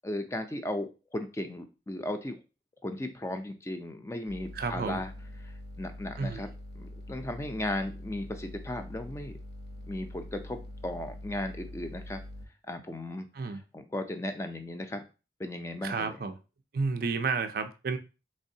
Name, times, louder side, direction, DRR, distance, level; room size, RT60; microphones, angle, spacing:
voice 1, 0.0-2.4 2.8-5.1 5.4-6.5 6.8-9.4 9.9-12.2 12.7-15.0 15.4-16.2, left 1 dB, 15° left, 0.4 m, -36 dB
sound 1, 4.3-12.5, left 1 dB, 65° left, 0.8 m, -44 dB
voice 2, 4.5-5.0 6.2-6.4 13.3-13.6 15.8-16.4 16.7-18.0, right 4 dB, 55° right, 0.4 m, -31 dB
3.6 x 3.2 x 2.7 m
head